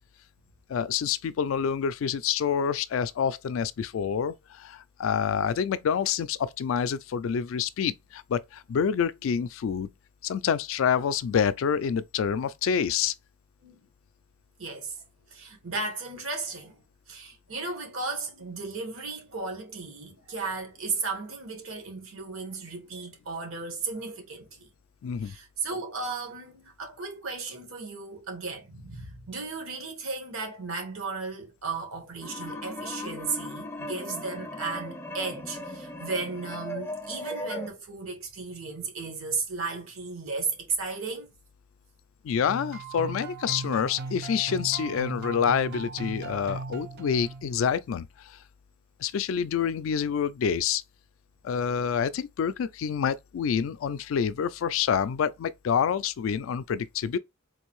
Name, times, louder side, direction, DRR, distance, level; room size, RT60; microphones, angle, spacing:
voice 1, 0.7-9.9 10.2-13.1 25.0-25.3 42.2-48.4 49.0-50.8 51.4-57.2, left 7 dB, 70° left, 0.3 m, -27 dB
voice 2, 14.6-15.0 15.3-16.8 17.1-24.7 25.2-41.3, right 4 dB, 80° right, 1.3 m, -35 dB
sound 1, 32.2-37.7, left 1 dB, 10° left, 0.5 m, -37 dB
sound 2, 42.5-47.7, right 3 dB, 55° right, 0.4 m, -38 dB
3.8 x 2.6 x 3.0 m
head